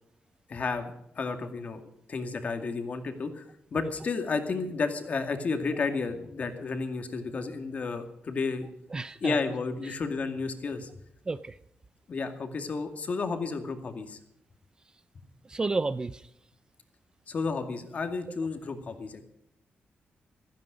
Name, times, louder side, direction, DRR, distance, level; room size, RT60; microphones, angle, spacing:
voice 1, 0.5-1.8 2.1-3.4 3.7-8.7 9.2-10.9 12.1-14.2 17.3-19.2, left 4 dB, 40° left, 6 dB, 2.2 m, -32 dB
voice 2, 8.9-9.4 11.3-11.5 15.5-16.2, right 3 dB, 20° right, 14 dB, 0.5 m, -31 dB
16.5 x 15.0 x 5.2 m, 0.75 s
wide cardioid pair, 170°, 4 cm